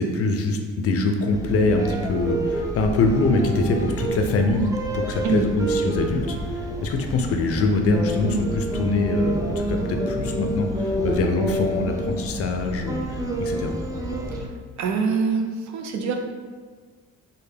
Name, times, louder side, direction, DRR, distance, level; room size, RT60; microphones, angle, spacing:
voice 1, 0.0-4.7 4.9-13.8, left 2 dB, 50° left, 4 dB, 0.4 m, -24 dB
sound 1, 1.3-14.5, right 1 dB, 10° right, 0.3 m, -28 dB
voice 2, 14.8-16.2, right 5 dB, 70° right, 4 dB, 0.5 m, -24 dB
3.3 x 2.2 x 3.2 m, 1.5 s
cardioid pair, 90°, 30 cm